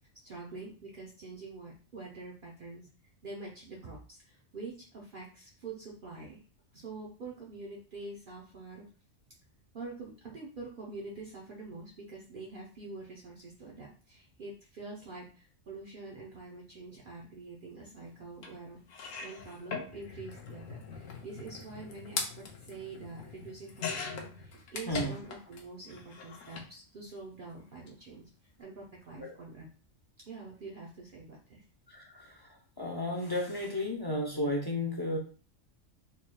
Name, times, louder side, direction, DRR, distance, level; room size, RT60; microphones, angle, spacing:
voice 1, 0.2-2.9 3.2-6.4 6.7-8.9 9.7-18.8 19.2-28.3 28.6-29.7 30.3-31.6, right 3 dB, 50° right, -3 dB, 0.8 m, -46 dB
sound 1, 18.4-18.5 18.9-25.6 25.9-26.7 27.7-27.9 28.1-28.2, left 5 dB, 90° left, 1.1 m, -41 dB
voice 2, 31.9-32.5 32.8-35.2, left 1 dB, 30° left, -2 dB, 0.5 m, -33 dB
3.9 x 3.1 x 2.2 m, 0.38 s
omnidirectional pair, 1.3 m